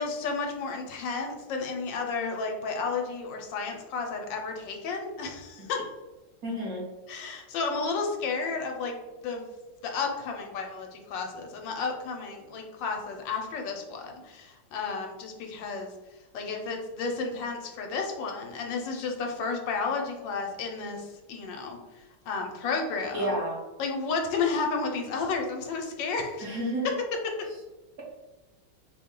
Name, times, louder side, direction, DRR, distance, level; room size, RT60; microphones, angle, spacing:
voice 1, 0.0-5.8 7.1-8.9 9.2-9.4 9.8-15.9 16.3-21.8 22.3-23.3 23.8-26.5 27.2-27.3, left 4 dB, 75° left, 2 dB, 1.3 m, -32 dB
voice 2, 6.4-6.8 23.1-23.6 26.4-26.9, right 1 dB, 55° right, -5 dB, 1.4 m, -30 dB
4.4 x 2.2 x 3.6 m, 1.1 s
omnidirectional pair, 2.0 m